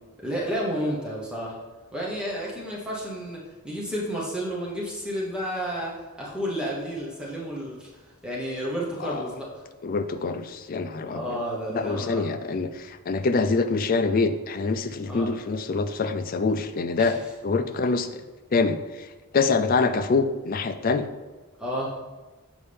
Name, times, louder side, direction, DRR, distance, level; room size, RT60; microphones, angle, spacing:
voice 1, 0.2-1.6 1.9-9.6 11.1-12.2 15.1-15.3 17.0-17.3 21.6-21.9, equal, 5° right, -5 dB, 0.9 m, -31 dB
voice 2, 9.8-11.4 11.7-18.2 18.5-19.1 19.3-21.1, left 4 dB, 40° left, 9 dB, 0.3 m, -25 dB
7.1 x 5.3 x 3.4 m, 1.2 s
head